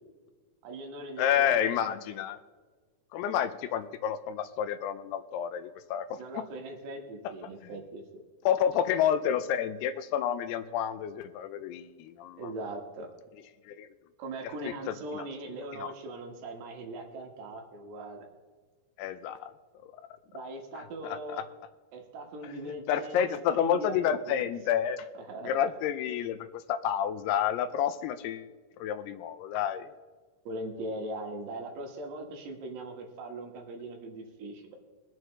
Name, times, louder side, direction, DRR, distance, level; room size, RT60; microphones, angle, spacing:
voice 1, 0.6-1.9 6.2-8.0 12.4-13.1 14.2-18.2 20.3-21.4 21.9-24.5 25.2-25.6 30.5-34.8, right 2 dB, 85° right, 2 dB, 3.6 m, -40 dB
voice 2, 1.2-2.4 3.1-6.2 8.5-12.4 13.7-13.9 14.6-15.2 15.8-15.9 19.0-19.5 19.8-19.9 21.0-21.4 22.7-25.1 25.4-28.5 28.8-29.9, left 9 dB, 85° left, 11 dB, 2.6 m, -29 dB
22.5 x 7.7 x 3.2 m, 1.4 s
omnidirectional pair, 4.7 m